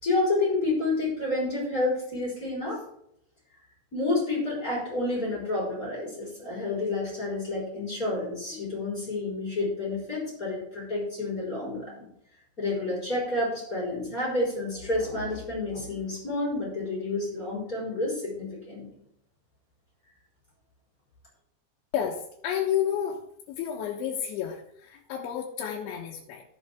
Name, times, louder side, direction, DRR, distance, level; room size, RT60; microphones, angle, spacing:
voice 1, 0.0-2.8 3.9-12.1 12.6-18.9, left 2 dB, 20° left, -5 dB, 4.3 m, -29 dB
voice 2, 21.9-23.2 23.5-26.4, left 9 dB, 85° left, -2 dB, 3.5 m, -31 dB
15.0 x 7.2 x 3.6 m, 0.73 s
omnidirectional pair, 5.3 m